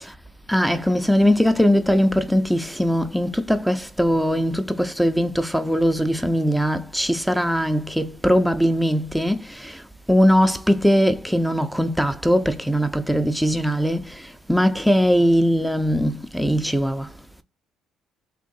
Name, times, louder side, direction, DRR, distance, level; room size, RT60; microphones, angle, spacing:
voice 1, 0.5-9.8 10.1-17.1, equal, ahead, 0.4 m, -20 dB
3.6 x 2.9 x 3.8 m
cardioid pair, 135°, 0 cm